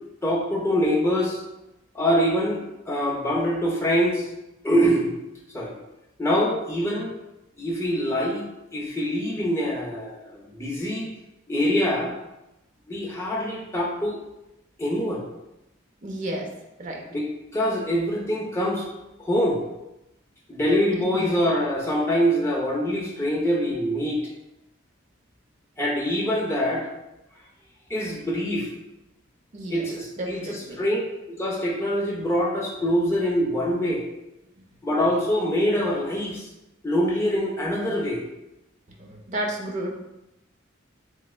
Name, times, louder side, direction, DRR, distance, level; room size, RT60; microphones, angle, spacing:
voice 1, 0.2-1.4 1.9-4.3 4.6-5.1 5.5-5.7 6.2-7.1 7.6-11.1 11.5-12.1 12.9-14.2 14.8-15.2 17.1-17.3 17.5-18.9 19.2-19.6 20.5-24.2 25.8-26.9 27.9-28.7 29.7-31.0 31.3-34.1 34.8-36.5 36.8-38.2, equal, 15° left, -3 dB, 0.6 m, -24 dB
voice 2, 16.0-16.5 16.8-17.0 20.9-21.4 29.5-29.9 30.2-30.8 34.6-34.7 39.0-40.0, right 1 dB, 40° right, 0 dB, 0.5 m, -32 dB
3.3 x 3.1 x 2.3 m, 0.91 s
head